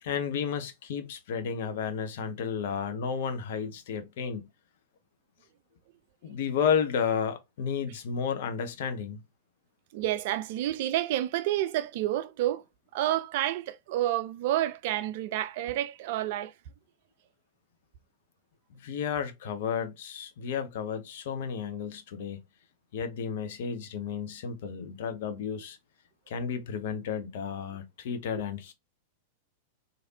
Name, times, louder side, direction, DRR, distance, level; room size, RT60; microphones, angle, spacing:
voice 1, 0.0-4.5 6.2-9.2 18.8-22.4 22.9-25.8 26.3-28.7, left 7 dB, 55° left, 0.6 m, -32 dB
voice 2, 9.9-12.6 12.9-16.5, right 13 dB, 50° right, 0.3 m, -29 dB
3.2 x 2.5 x 2.7 m
figure-of-eight pair, 95°, 0 cm